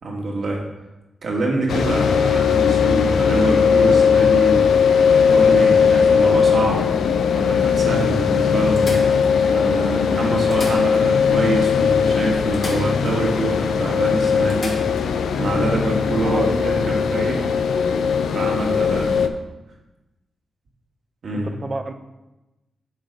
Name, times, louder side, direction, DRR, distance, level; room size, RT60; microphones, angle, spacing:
voice 1, 0.0-0.6 1.2-4.7 5.2-6.9 7.3-9.0 9.5-14.8 15.4-17.4 18.3-19.2 21.2-21.5, right 2 dB, 60° right, -1 dB, 1.8 m, -25 dB
sound 1, 1.7-19.3, left 6 dB, 85° left, 0.5 m, -18 dB
sound 2, 5.2-6.9 7.5-7.6 7.9-8.0 8.8-9.8 10.3-11.4 11.6-11.7 12.5-13.4 13.7-13.8 14.5-15.1 17.0-17.2, left 2 dB, 45° left, 2.1 m, -38 dB
voice 2, 16.2-16.8 18.8-19.1 21.3-21.9, right 2 dB, 35° right, 7 dB, 0.7 m, -30 dB
8.2 x 4.0 x 5.4 m, 1.0 s
cardioid pair, 70°, 0 cm